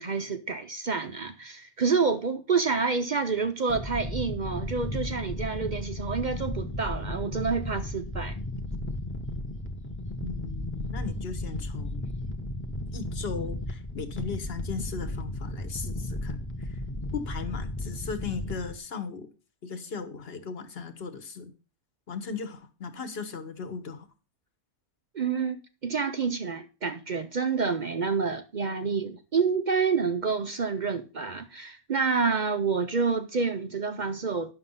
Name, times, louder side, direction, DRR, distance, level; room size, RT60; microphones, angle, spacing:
voice 1, 0.0-8.4 25.1-34.5, right 5 dB, 55° right, 0.5 m, -28 dB
sound 1, 3.7-18.8, left 1 dB, 10° left, 0.7 m, -34 dB
voice 2, 10.2-12.1 12.9-16.8 17.1-19.3 19.6-21.5 22.1-24.1, left 5 dB, 45° left, 1.4 m, -37 dB
10.0 x 6.6 x 5.5 m
omnidirectional pair, 1.6 m